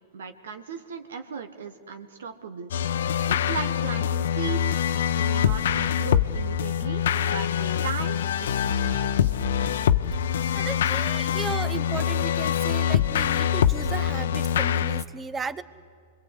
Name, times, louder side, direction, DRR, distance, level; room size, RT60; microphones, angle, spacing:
voice 1, 0.1-2.7 3.3-4.8 5.1-9.3, right 5 dB, 80° right, 7 dB, 1.3 m, -37 dB
sound 1, 2.7-15.0, left 9 dB, 75° left, 0.7 m, -24 dB
voice 2, 10.5-15.6, right 5 dB, 20° right, 15 dB, 0.9 m, -35 dB
26.0 x 22.5 x 8.2 m, 2.3 s
hypercardioid pair, 115°, 0 cm